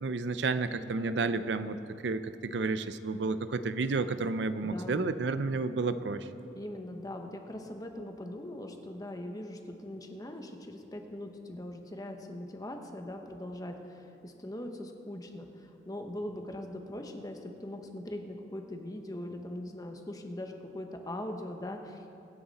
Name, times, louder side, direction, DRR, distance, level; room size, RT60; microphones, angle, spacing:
voice 1, 0.0-1.8 2.0-6.3, right 3 dB, 70° right, 12 dB, 0.5 m, -31 dB
voice 2, 4.6-5.2 6.5-22.1, left 1 dB, 20° left, 4 dB, 1.0 m, -41 dB
24.0 x 9.7 x 4.2 m, 2.8 s
head